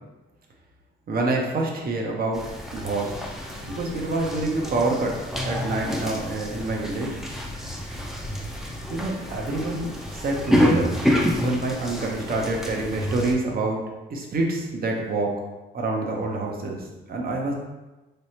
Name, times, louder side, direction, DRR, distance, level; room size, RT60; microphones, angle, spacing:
voice 1, 1.1-2.4 2.7-3.1 3.6-5.1 5.4-7.1 8.9-9.9 10.2-10.9 11.3-13.8 14.1-15.3 15.7-16.8 17.1-17.5, right 2 dB, 50° right, 0 dB, 0.8 m, -26 dB
sound 1, 2.3-13.3, equal, ahead, 0.5 m, -28 dB
3.3 x 3.1 x 2.8 m, 1.1 s
cardioid pair, 90°, 20 cm